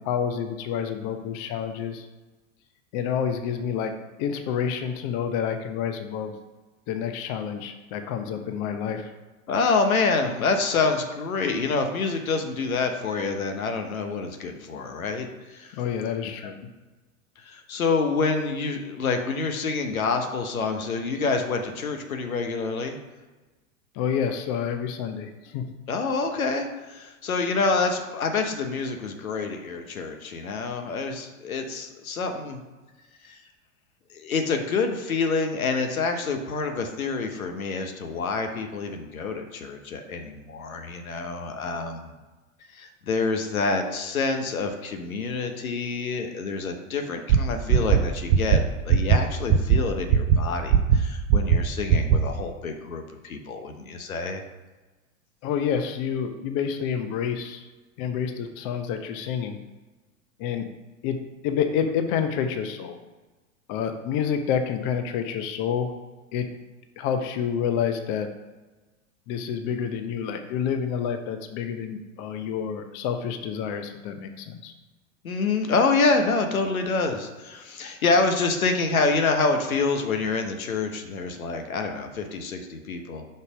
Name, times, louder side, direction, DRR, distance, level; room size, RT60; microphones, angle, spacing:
voice 1, 0.0-2.1 2.9-3.9 4.2-6.3 6.9-9.1 15.7-16.5 23.9-25.7 55.4-57.6 58.0-59.6 60.4-60.7 61.0-61.2 61.4-63.0 63.7-65.9 66.3-66.5 67.0-68.3 69.3-74.7, left 7 dB, 45° left, 7 dB, 0.8 m, -28 dB
voice 2, 9.5-15.8 16.4-16.5 17.4-23.0 25.9-32.6 33.2-33.4 34.1-42.1 42.7-54.4 75.2-83.3, left 4 dB, 85° left, 5 dB, 0.9 m, -27 dB
sound 1, 47.3-47.4 47.7-48.0 48.3-48.6 48.9-49.2 49.5-49.8 50.1-50.4 50.7-51.0 51.3-51.6 51.9-52.2, right 8 dB, 45° right, 0.6 m, -16 dB
5.6 x 4.0 x 4.9 m, 1.2 s
hypercardioid pair, 90°, 41 cm